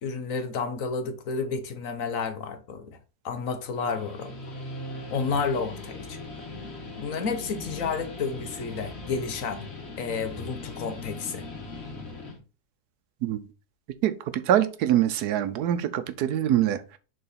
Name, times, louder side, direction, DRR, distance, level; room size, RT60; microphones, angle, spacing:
voice 1, 0.0-3.0 3.2-4.3 5.1-6.2 7.0-9.6 10.0-11.5, left 5 dB, 60° left, 1.2 m, -31 dB
Guitar, 3.6-12.4, left 2 dB, 45° left, 1.6 m, -39 dB
voice 2, 14.0-17.0, right 11 dB, 85° right, 1.2 m, -24 dB
6.7 x 3.9 x 4.0 m
omnidirectional pair, 1.7 m